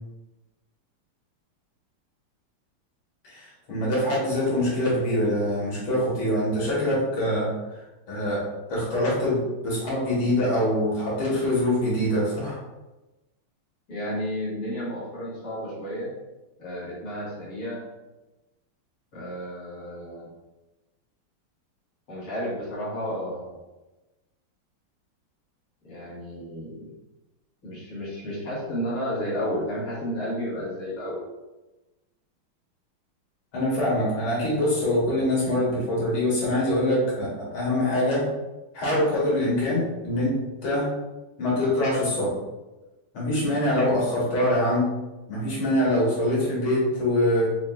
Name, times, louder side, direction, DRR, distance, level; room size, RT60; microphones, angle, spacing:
voice 1, 3.2-7.5 8.1-8.4 8.7-12.6 33.5-38.3 38.7-40.9 41.4-42.4 43.1-44.9 45.3-47.6, left 1 dB, 70° left, -6 dB, 2.2 m, -24 dB
voice 2, 13.9-16.1 16.6-17.8 19.1-20.3 22.1-23.6 25.8-26.9 27.6-31.3, equal, 40° left, -9 dB, 1.8 m, -32 dB
5.6 x 2.9 x 2.3 m, 1.1 s
omnidirectional pair, 2.4 m